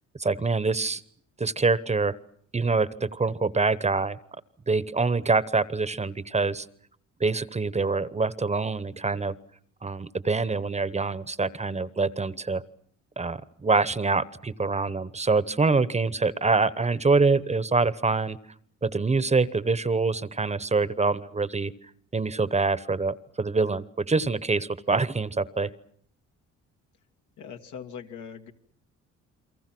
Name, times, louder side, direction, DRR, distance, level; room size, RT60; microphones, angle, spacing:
voice 1, 0.2-1.0 1.4-2.2 2.5-4.2 4.7-6.7 7.2-9.4 9.8-12.6 13.2-18.4 18.8-21.7 22.1-25.7, right 3 dB, 20° right, 16 dB, 1.0 m, -25 dB
voice 2, 27.4-28.5, left 7 dB, 80° left, 4 dB, 2.2 m, -41 dB
30.0 x 23.0 x 6.1 m, 0.64 s
cardioid pair, 90°, 30 cm